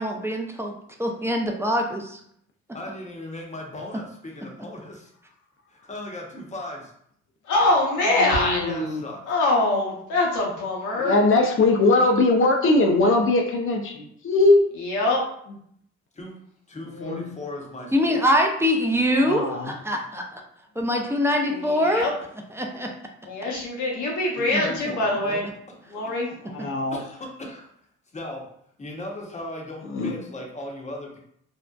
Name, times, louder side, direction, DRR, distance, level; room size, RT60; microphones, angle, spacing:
voice 1, 0.0-2.2 17.9-20.4 20.8-22.1 22.6-22.9 24.5-24.6, equal, 10° right, 2 dB, 0.5 m, -24 dB
voice 2, 2.7-5.1 5.7-6.9 8.7-9.2 16.1-16.3 16.7-18.3 24.4-25.4 26.0-26.3 26.9-27.7 28.1-28.5 28.8-31.2, left 1 dB, 20° left, 0 dB, 0.8 m, -37 dB
voice 3, 7.5-8.7 9.3-11.2 14.8-15.2 21.5-22.1 23.2-25.4 25.9-26.3, left 2 dB, 75° left, -2 dB, 0.9 m, -23 dB
voice 4, 8.2-9.0 11.0-14.6 17.0-17.2 19.2-19.7 26.4-27.0 29.9-30.1, left 2 dB, 45° left, 3 dB, 0.5 m, -20 dB
2.6 x 2.1 x 2.3 m, 0.68 s
supercardioid pair, 55°, 31 cm